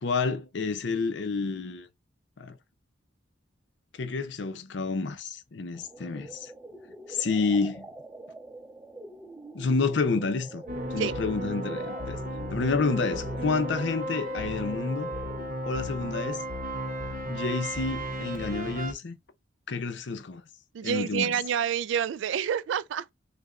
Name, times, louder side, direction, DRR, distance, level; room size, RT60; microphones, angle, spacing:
voice 1, 0.0-1.9 2.4-2.6 3.9-6.5 7.1-7.9 9.5-10.6 10.9-12.2 12.5-15.1 15.6-16.4 17.3-19.2 19.7-20.4 20.8-21.3, left 4 dB, 65° left, 0.5 m, -29 dB
sound 1, 5.7-15.7, right 1 dB, 10° right, 0.5 m, -45 dB
sound 2, 10.7-18.9, equal, 45° right, 0.8 m, -34 dB
voice 2, 20.7-23.1, right 8 dB, 75° right, 0.3 m, -28 dB
6.5 x 2.2 x 2.4 m
head